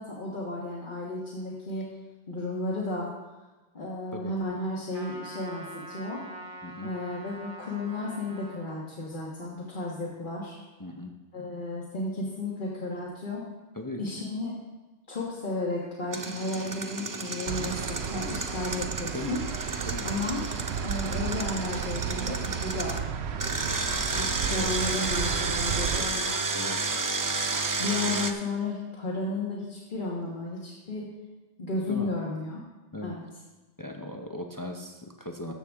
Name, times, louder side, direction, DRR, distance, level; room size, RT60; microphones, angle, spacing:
voice 1, 0.0-1.9 2.3-3.1 3.7-6.2 6.8-10.6 11.3-13.4 14.0-14.5 15.1-19.4 20.0-20.4 20.8-23.0 23.6-26.5 27.8-31.1 31.6-32.6 33.0-33.2, left 2 dB, 45° left, -4 dB, 1.6 m, -33 dB
Trumpet, 4.9-8.6, right 2 dB, 50° right, 1.4 m, -44 dB
voice 2, 6.6-6.9 10.8-11.2 13.7-14.0 19.1-19.4 19.9-20.1 24.4-24.7 26.5-26.8 31.9-32.1 32.9-33.2 33.8-35.5, left 2 dB, 20° left, 2 dB, 0.6 m, -38 dB
Engine, 16.1-23.0 23.4-28.3, right 3 dB, 30° right, 0.3 m, -32 dB
sound 1, 17.5-26.1, right 7 dB, 70° right, 0.9 m, -33 dB
14.5 x 6.7 x 3.5 m, 1.2 s
omnidirectional pair, 1.2 m